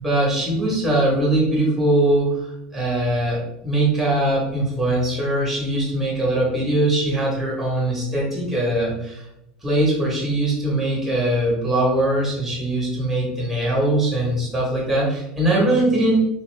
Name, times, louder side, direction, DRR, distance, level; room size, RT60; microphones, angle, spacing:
voice 1, 0.0-9.3 9.6-16.2, right 1 dB, ahead, -5 dB, 1.3 m, -21 dB
3.4 x 2.8 x 3.3 m, 0.86 s
cardioid pair, 160°, 3 cm